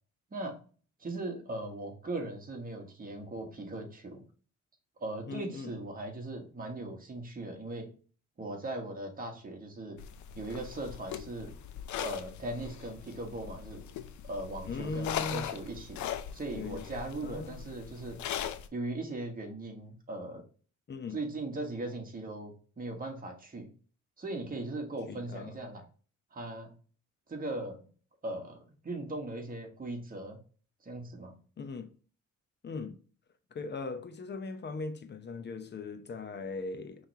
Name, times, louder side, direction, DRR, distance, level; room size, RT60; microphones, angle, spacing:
voice 1, 1.0-4.2 5.0-7.9 8.4-10.0 10.3-11.5 12.0-13.8 14.2-16.0 16.3-18.2 18.7-20.4 21.1-23.7 24.2-25.8 26.3-26.7 27.3-27.9 28.2-30.4 30.8-31.4, right 2 dB, 30° right, 1.4 m, -39 dB
voice 2, 5.3-5.7 14.6-15.5 16.5-16.9 17.2-17.7 20.9-21.2 25.1-25.6 31.6-31.9 32.6-33.0 33.5-37.0, left 3 dB, 35° left, 0.8 m, -39 dB
sound 1, 10.0-18.7, left 9 dB, 70° left, 0.6 m, -40 dB
5.5 x 3.3 x 2.8 m
cardioid pair, 90°, 30 cm